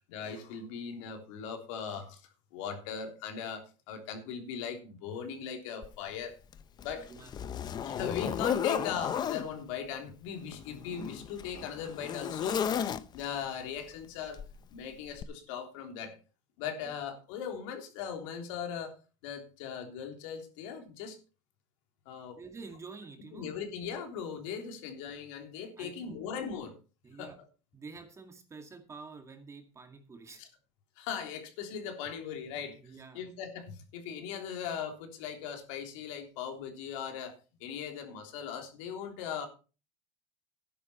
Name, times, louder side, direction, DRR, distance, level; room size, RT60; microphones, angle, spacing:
voice 1, 0.1-2.2 2.5-6.4 6.8-7.1 7.8-14.4 14.7-16.2 16.6-19.0 19.2-21.2 22.0-22.4 23.3-26.7 27.2-27.3 30.4-30.5 31.0-32.8 33.1-39.5, left 7 dB, 80° left, 4 dB, 3.4 m, -39 dB
Zipper (clothing), 5.8-5.9 6.5-9.5 10.4-13.4 14.4-14.6 15.2-15.3, left 8 dB, 25° left, 0.7 m, -34 dB
voice 2, 6.9-7.4 16.8-17.0 22.4-23.5 25.8-26.2 27.0-27.4 27.7-30.5 32.8-33.2 38.8-38.9, right 4 dB, 20° right, 5 dB, 2.1 m, -48 dB
13.0 x 10.0 x 4.3 m, 0.34 s
cardioid pair, 155°, 16 cm